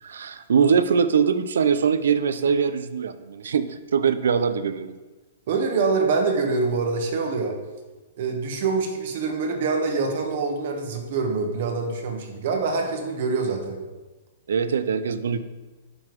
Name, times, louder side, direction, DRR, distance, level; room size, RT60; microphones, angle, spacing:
voice 1, 0.0-4.9 14.5-15.4, right 6 dB, 85° right, 12 dB, 0.6 m, -22 dB
voice 2, 5.5-7.6 8.2-13.8, right 4 dB, 50° right, 4 dB, 1.3 m, -25 dB
10.0 x 3.9 x 4.6 m, 1.2 s
hypercardioid pair, 160°, 0 cm